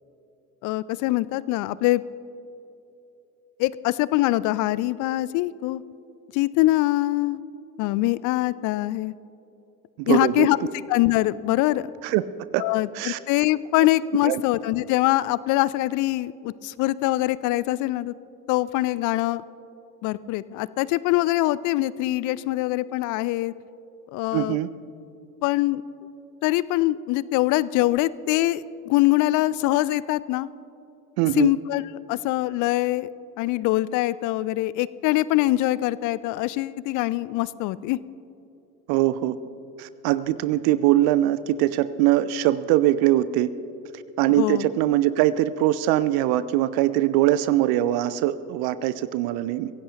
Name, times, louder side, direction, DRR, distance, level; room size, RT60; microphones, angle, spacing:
voice 1, 0.6-2.0 3.6-5.8 6.3-7.4 7.8-9.1 10.1-10.6 10.9-11.9 12.6-18.1 18.5-19.4 20.0-23.5 24.1-24.6 25.4-25.8 26.4-30.5 31.4-31.8 32.1-33.1 33.4-38.0 44.4-44.7, left 17 dB, 40° left, 19 dB, 0.4 m, -23 dB
voice 2, 10.0-10.5 12.0-12.2 12.5-12.6 12.9-13.2 14.2-14.4 24.3-24.7 31.2-31.5 38.9-39.4 39.8-43.5 44.2-49.7, right 14 dB, 50° right, 16 dB, 0.6 m, -22 dB
24.0 x 16.5 x 2.9 m, 2.9 s
figure-of-eight pair, 65°, 47 cm